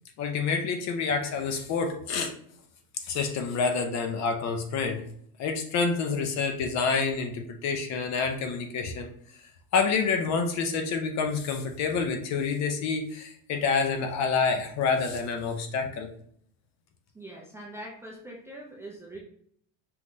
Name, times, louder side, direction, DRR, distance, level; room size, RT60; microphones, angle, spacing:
voice 1, 0.2-2.3 3.0-5.0 5.4-9.1 9.7-16.1, left 5 dB, 35° left, 5 dB, 0.6 m, -28 dB
voice 2, 17.1-19.2, right 1 dB, 5° right, -4 dB, 0.5 m, -42 dB
5.6 x 3.2 x 2.6 m, 0.65 s
supercardioid pair, 145°, 46 cm